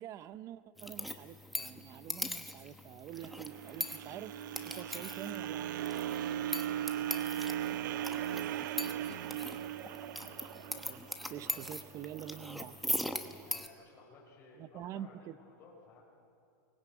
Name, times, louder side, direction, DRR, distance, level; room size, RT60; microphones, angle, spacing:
voice 1, 0.0-4.3 4.6-5.9 10.7-12.8 14.6-15.4, right 11 dB, 30° right, 16 dB, 0.8 m, -46 dB
sound 1, 0.8-13.7, equal, ahead, 1.0 m, -41 dB
sound 2, 3.1-11.4, right 11 dB, 70° right, 0.9 m, -38 dB
voice 2, 4.7-5.1 6.3-8.7 9.3-9.9 11.3-11.7 13.5-16.0, left 3 dB, 20° left, -7 dB, 5.3 m, -58 dB
sound 3, 7.6-13.5, right 12 dB, 55° right, 1.2 m, -52 dB
24.0 x 20.5 x 9.0 m, 2.5 s
supercardioid pair, 150°, 10 cm